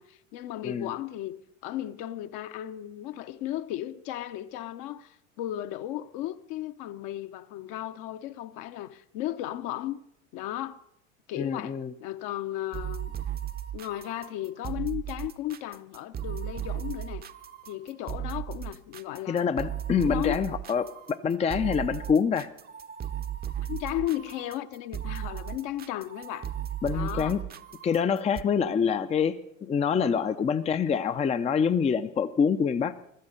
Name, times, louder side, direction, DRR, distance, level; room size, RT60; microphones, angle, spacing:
voice 1, 0.0-10.0 10.3-10.8 11.3-13.2 13.7-17.2 17.7-19.5 20.0-20.4 23.6-26.5 26.9-27.4 28.6-28.9, left 13 dB, 55° left, 0.9 m, -35 dB
voice 2, 11.4-11.9 19.3-22.5 26.8-27.4 27.8-32.9, left 6 dB, 15° left, 0.5 m, -26 dB
sound 1, 12.7-28.4, right 10 dB, 25° right, 0.7 m, -36 dB
15.5 x 12.5 x 6.6 m
hypercardioid pair, 85°, 40 cm